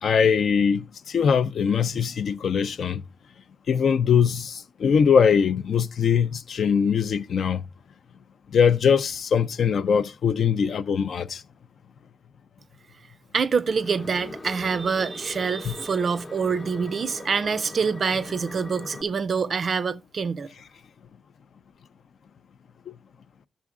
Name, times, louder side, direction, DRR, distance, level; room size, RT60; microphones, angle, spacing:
voice 1, 0.0-3.0 3.7-7.6 8.5-11.4 15.6-15.7, left 7 dB, 60° left, 0.5 m, -22 dB
voice 2, 13.3-20.5, right 5 dB, 40° right, 0.4 m, -26 dB
sound 1, 13.6-19.0, left 2 dB, 30° left, 0.7 m, -40 dB
11.0 x 7.1 x 3.6 m
wide cardioid pair, 180°, 0 cm